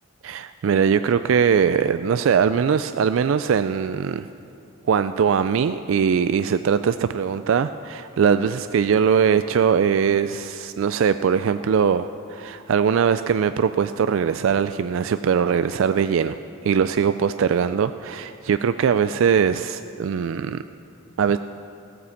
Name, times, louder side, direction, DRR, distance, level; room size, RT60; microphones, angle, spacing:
voice 1, 0.2-4.3 4.9-16.4 16.6-20.6 21.2-21.4, right 7 dB, 75° right, 11 dB, 0.3 m, -21 dB
15.5 x 9.4 x 7.0 m, 2.5 s
head